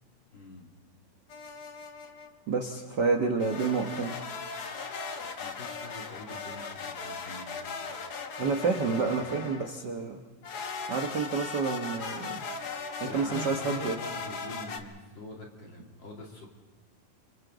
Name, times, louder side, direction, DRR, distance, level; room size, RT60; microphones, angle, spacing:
voice 1, 0.3-0.7 5.2-8.0 8.6-8.7 13.0-14.9 15.1-16.5, left 1 dB, 40° left, 0 dB, 3.1 m, -43 dB
sound 1, 1.3-2.3 3.4-9.8 10.4-14.8, left 4 dB, 60° left, 1.0 m, -38 dB
voice 2, 2.5-4.2 8.4-10.2 10.9-12.4 13.0-14.0, right 4 dB, 55° right, 3 dB, 1.1 m, -29 dB
29.0 x 25.0 x 4.0 m, 1.4 s
omnidirectional pair, 3.6 m